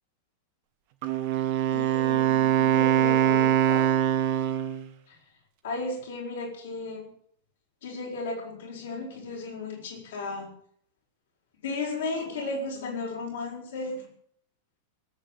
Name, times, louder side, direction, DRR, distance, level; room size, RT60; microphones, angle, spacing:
Wind instrument woodwind instrument, 1.0-4.9, right 11 dB, 50° right, 1.8 m, -23 dB
voice 1, 1.7-3.9 5.1-5.2 5.6-7.1 7.8-10.5 11.6-14.0, left 3 dB, 60° left, -1 dB, 6.3 m, -35 dB
18.0 x 8.8 x 8.8 m, 0.65 s
figure-of-eight pair, 90°, 0 cm